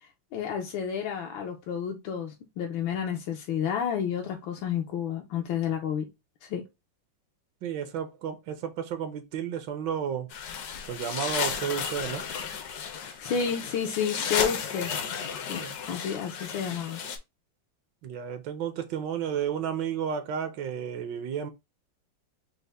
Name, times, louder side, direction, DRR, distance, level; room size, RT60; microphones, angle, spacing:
voice 1, 0.0-6.1 6.4-6.6 13.0-14.9 15.5-15.6 15.9-17.0, left 7 dB, 80° left, 1.4 m, -31 dB
voice 2, 7.6-10.3 10.9-12.3 15.6-15.8 18.0-21.5, right 8 dB, 75° right, 1.2 m, -32 dB
sound 1, 10.3-17.2, left 7 dB, 65° left, 1.0 m, -33 dB
5.3 x 2.1 x 3.3 m
omnidirectional pair, 2.1 m